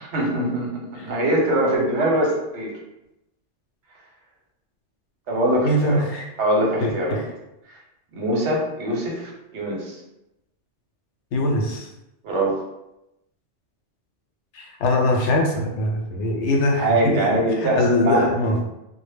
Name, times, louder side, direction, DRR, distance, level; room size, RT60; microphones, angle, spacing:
voice 1, 0.0-2.7 5.3-6.0 6.4-7.2 8.1-10.0 12.2-12.6 16.8-18.3, right 1 dB, 80° right, -1 dB, 1.0 m, -23 dB
voice 2, 5.6-6.3 6.8-7.2 11.3-11.9 14.5-17.2 17.6-18.6, left 1 dB, 80° left, 1 dB, 0.9 m, -22 dB
2.1 x 2.0 x 3.3 m, 0.90 s
omnidirectional pair, 1.2 m